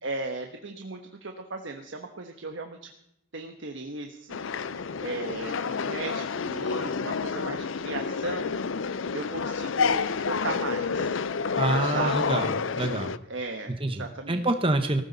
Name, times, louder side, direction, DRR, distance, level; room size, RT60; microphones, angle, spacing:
voice 1, 0.0-2.9 3.3-8.6 9.1-11.2 11.9-12.3 13.3-14.4, right 3 dB, 70° right, 4 dB, 1.2 m, -36 dB
sound 1, 4.3-13.2, left 5 dB, 75° left, 0.5 m, -29 dB
voice 2, 11.6-13.1 13.7-15.0, right 2 dB, 25° right, 7 dB, 1.1 m, -27 dB
18.5 x 15.5 x 4.1 m, 0.76 s
head